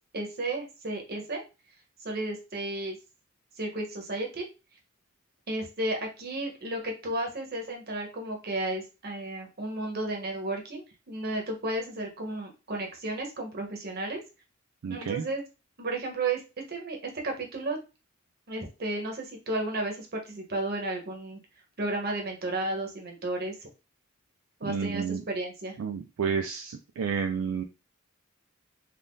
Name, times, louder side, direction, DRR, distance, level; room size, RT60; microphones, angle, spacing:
voice 1, 0.1-1.4 2.0-3.0 3.6-4.5 5.5-14.2 14.9-15.4 15.8-16.4 16.7-17.8 18.5-21.4 21.8-23.5 24.6-25.7, right 2 dB, 50° right, 2 dB, 0.9 m, -33 dB
voice 2, 14.8-15.2 24.6-25.2 25.8-27.6, right 6 dB, 70° right, 5 dB, 0.3 m, -30 dB
3.6 x 2.5 x 2.5 m, 0.29 s
head